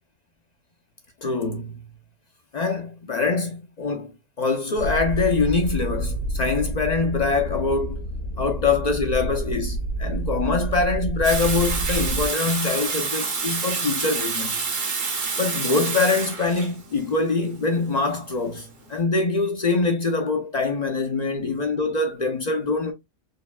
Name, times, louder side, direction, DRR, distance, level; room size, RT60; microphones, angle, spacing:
voice 1, 1.2-1.8 2.5-8.0 8.4-14.6 15.4-22.9, left 3 dB, 50° left, 0.5 m, -24 dB
sound 1, 4.8-12.3, right 1 dB, 85° left, 1.9 m, -29 dB
Water tap faucet / Sink (filling or washing), 11.2-18.9, right 4 dB, 45° right, 0.8 m, -28 dB
4.6 x 3.0 x 2.2 m
omnidirectional pair, 1.3 m